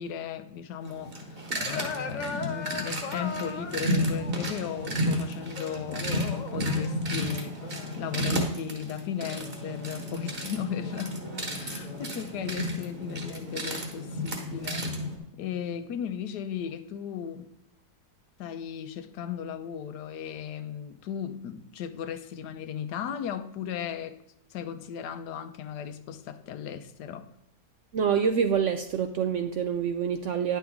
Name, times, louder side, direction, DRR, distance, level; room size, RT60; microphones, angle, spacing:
voice 1, 0.0-7.6 8.0-11.2 11.6-14.9 15.3-17.5 18.4-24.2 24.5-27.3, left 8 dB, 85° left, 1.3 m, -36 dB
sound 1, 0.8-15.2, equal, 35° right, 1.4 m, -32 dB
sound 2, 1.6-10.5 11.2-12.7 13.2-16.1, left 4 dB, 60° left, 0.4 m, -41 dB
voice 2, 27.9-30.6, right 7 dB, 70° right, 0.7 m, -26 dB
9.9 x 6.9 x 3.5 m
omnidirectional pair, 1.7 m